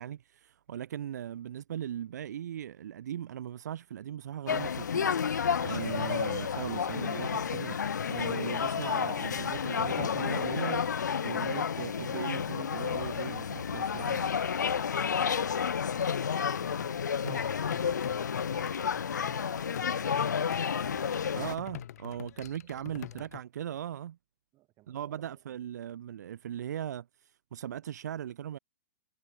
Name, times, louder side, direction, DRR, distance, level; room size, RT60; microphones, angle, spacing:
voice 1, 0.0-14.3 17.2-17.4 21.3-24.2 24.9-28.6, right 10 dB, 75° right, 0.5 m, -39 dB
sound 1, 4.5-21.6, left 7 dB, 90° left, 0.5 m, -31 dB
sound 2, 15.9-23.4, left 12 dB, 65° left, 2.3 m, -46 dB
voice 2, 22.4-23.3 24.5-25.6, right 17 dB, 35° right, 6.8 m, -63 dB
hypercardioid pair, 120°, 9 cm